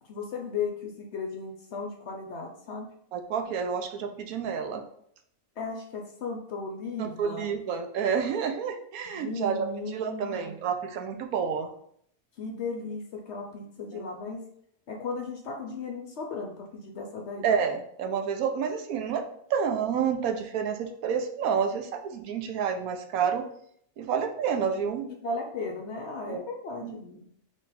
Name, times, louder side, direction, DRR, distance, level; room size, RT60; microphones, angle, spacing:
voice 1, 0.1-2.9 5.6-7.5 9.1-10.5 12.4-14.4 14.9-17.5 25.2-27.2, left 4 dB, 60° left, 2 dB, 0.8 m, -36 dB
voice 2, 3.1-4.8 7.0-9.6 9.9-11.7 13.9-14.0 17.4-19.2 19.5-23.5 24.0-25.1 26.3-26.4 26.8-26.9, right 7 dB, 80° right, 6 dB, 1.0 m, -29 dB
3.8 x 3.1 x 4.1 m, 0.67 s
omnidirectional pair, 1.6 m